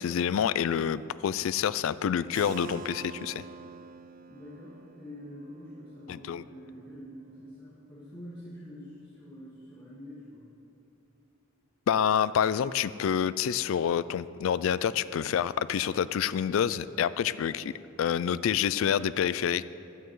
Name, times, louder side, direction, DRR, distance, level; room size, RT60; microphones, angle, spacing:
voice 1, 0.0-3.4 6.1-6.4 11.9-17.7 18.0-19.7, left 8 dB, 75° left, 16 dB, 0.3 m, -27 dB
Keyboard (musical), 2.3-7.9, right 4 dB, 45° right, 0.4 m, -47 dB
voice 2, 4.3-10.5, equal, 25° left, -10 dB, 1.8 m, -46 dB
15.5 x 11.5 x 3.2 m, 2.8 s
head